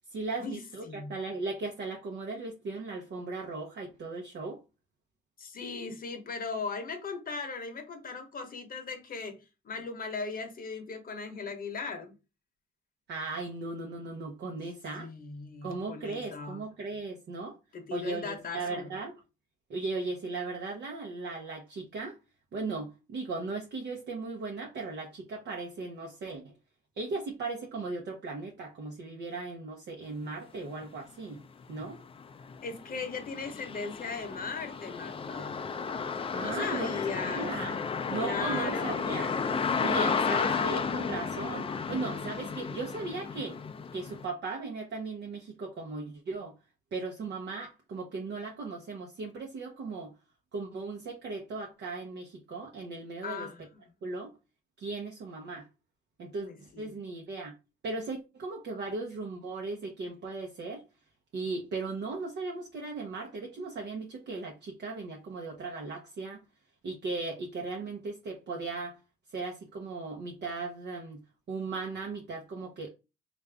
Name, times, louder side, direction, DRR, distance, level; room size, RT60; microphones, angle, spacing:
voice 1, 0.1-4.6 13.1-15.1 15.6-17.6 17.9-19.2 19.7-22.2 22.5-26.5 27.0-31.4 31.7-32.0 36.3-36.9 37.2-37.8 38.1-39.3 39.8-43.6 43.9-46.5 46.9-50.1 50.5-53.5 54.0-54.3 54.8-55.7 56.2-57.5 57.8-60.8 61.3-66.4 66.8-69.0 69.3-71.2 71.5-72.9, right 3 dB, 60° right, 0.8 m, -37 dB
voice 2, 5.4-12.1 14.9-16.6 17.7-18.9 32.6-35.6 36.4-37.5 38.1-39.2 39.9-40.7 53.2-53.6 56.5-56.9, left 4 dB, 45° left, 0.9 m, -38 dB
sound 1, 30.8-30.9 31.4-44.3, left 5 dB, 30° left, 0.4 m, -33 dB
3.5 x 2.5 x 3.3 m
cardioid pair, 90°, 20 cm